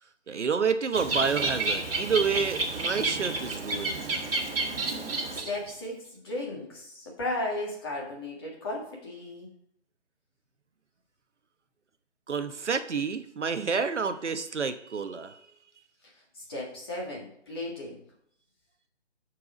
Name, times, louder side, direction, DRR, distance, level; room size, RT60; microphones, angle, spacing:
voice 1, 0.3-4.1 12.3-15.4, right 5 dB, 75° right, 9 dB, 1.0 m, -29 dB
Bird, 0.9-5.7, right 2 dB, 55° right, 1.9 m, -30 dB
voice 2, 5.3-9.5 16.3-18.0, left 2 dB, 20° left, -3 dB, 1.8 m, -35 dB
12.5 x 4.7 x 5.0 m, 0.70 s
hypercardioid pair, 175°, 36 cm